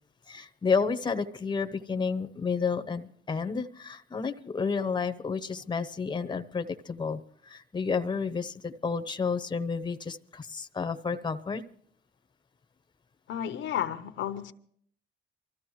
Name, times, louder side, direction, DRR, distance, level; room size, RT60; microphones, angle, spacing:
voice 1, 0.3-11.6, left 5 dB, 20° left, 0.9 m, -31 dB
voice 2, 13.3-14.5, left 10 dB, 75° left, 0.9 m, -32 dB
24.0 x 14.0 x 3.2 m
cardioid pair, 90°, 20 cm